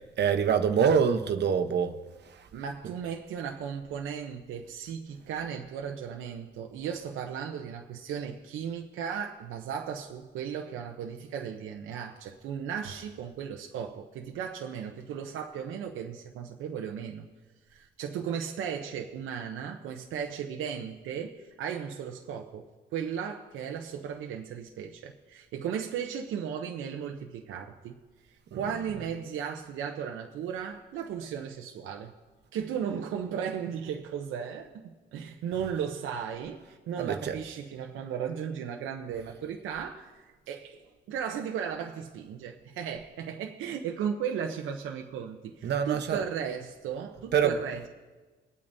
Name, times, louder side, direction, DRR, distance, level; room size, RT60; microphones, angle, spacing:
voice 1, 0.2-1.9 2.2-2.5 28.5-28.6 37.0-37.4 45.6-46.2 47.3-47.6, right 7 dB, 60° right, 8 dB, 1.0 m, -25 dB
voice 2, 2.5-17.3 17.7-22.7 22.9-28.0 28.2-32.1 32.5-47.8, right 8 dB, 85° right, 3 dB, 0.8 m, -36 dB
22.5 x 8.8 x 2.7 m, 1.3 s
cardioid pair, 90°, 20 cm